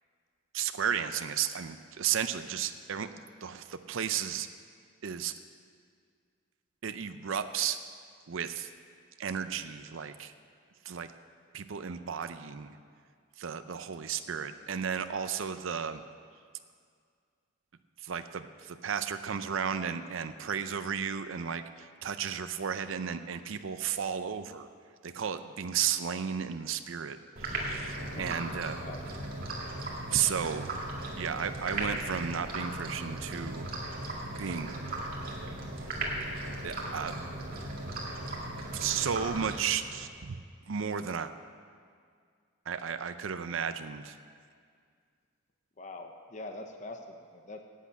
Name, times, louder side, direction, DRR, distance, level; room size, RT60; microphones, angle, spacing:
voice 1, 0.5-3.1 3.4-4.5 5.0-5.3 6.8-7.8 8.3-8.7 9.2-10.3 10.8-11.1 11.5-12.8 13.4-16.0 18.0-24.7 25.0-28.8 30.1-30.7 31.2-33.7 34.3-34.8 36.6-37.1 38.7-40.4 40.7-41.3 42.7-44.2, right 7 dB, 70° right, 10 dB, 0.5 m, -33 dB
dog-drinking, 27.4-40.1, right 1 dB, 45° right, 2.1 m, -37 dB
voice 2, 28.1-28.4 28.8-29.0 45.8-47.6, left 2 dB, 35° left, 5 dB, 0.8 m, -43 dB
11.0 x 8.4 x 8.5 m, 2.1 s
head